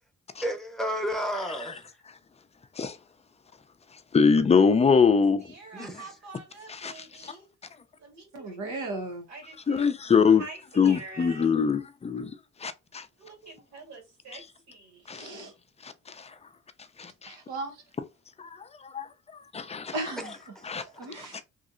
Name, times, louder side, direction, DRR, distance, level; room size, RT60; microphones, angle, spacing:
voice 1, 0.4-1.9 5.7-6.2 20.2-20.9, equal, ahead, 0.9 m, -33 dB
voice 2, 4.1-5.5 6.7-7.3 9.7-10.4 10.8-12.3 12.6-13.0 15.1-15.3 15.8-15.9 16.2-16.3 17.0-17.3 18.4-18.5 18.9-19.1 19.5-19.9 20.7-20.8, left 5 dB, 20° left, 0.4 m, -23 dB
voice 3, 5.4-7.5 8.0-8.9 9.3-9.9 10.4-11.5 13.2-15.1, right 3 dB, 65° right, 2.0 m, -46 dB
voice 4, 8.3-9.2 15.1-15.5 17.3-17.8 19.9-20.3 20.9-21.4, right 2 dB, 85° right, 1.1 m, -36 dB
3.1 x 2.7 x 2.5 m
cardioid pair, 90°, 30 cm